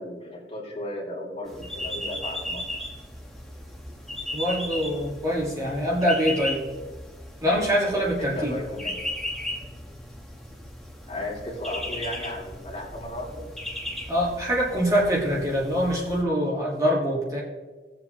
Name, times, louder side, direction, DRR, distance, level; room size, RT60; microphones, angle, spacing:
voice 1, 0.0-2.6 8.2-9.0 11.1-13.4, left 1 dB, 35° left, -4 dB, 2.7 m, -35 dB
sound 1, 1.5-16.2, left 1 dB, ahead, 1.1 m, -36 dB
voice 2, 4.3-6.6 7.4-8.5 14.1-17.4, equal, 20° right, -4 dB, 1.6 m, -24 dB
17.5 x 7.4 x 2.9 m, 1.4 s
head